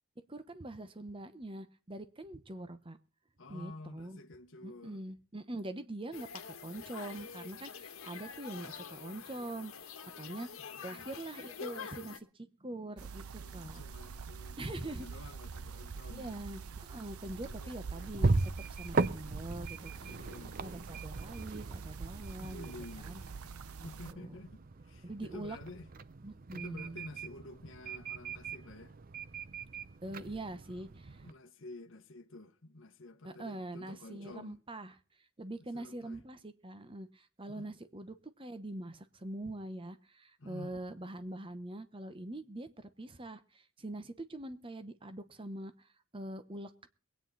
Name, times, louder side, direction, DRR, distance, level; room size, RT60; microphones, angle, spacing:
voice 1, 0.3-3.0 3.5-4.2 4.6-10.5 10.8-13.8 14.6-15.1 16.1-18.3 18.7-20.1 20.6-22.7 23.0-23.2 23.8-24.4 25.0-25.6 26.2-27.0 30.0-31.2 33.2-35.0 35.4-45.9 46.1-46.9, right 1 dB, 25° right, 0.9 m, -44 dB
voice 2, 3.4-5.0 10.6-11.1 13.4-16.4 17.4-18.1 20.0-20.6 22.4-23.3 23.8-25.9 26.5-28.9 30.0-30.8 31.2-34.6 35.7-36.2 37.5-37.7 40.4-40.8, left 2 dB, 60° left, 1.0 m, -50 dB
sound 1, 6.1-12.2, left 6 dB, 75° left, 1.4 m, -46 dB
sound 2, 13.0-24.1, right 5 dB, 90° right, 0.7 m, -46 dB
sound 3, 17.2-31.3, right 3 dB, 40° right, 0.6 m, -38 dB
23.0 x 9.3 x 4.1 m
head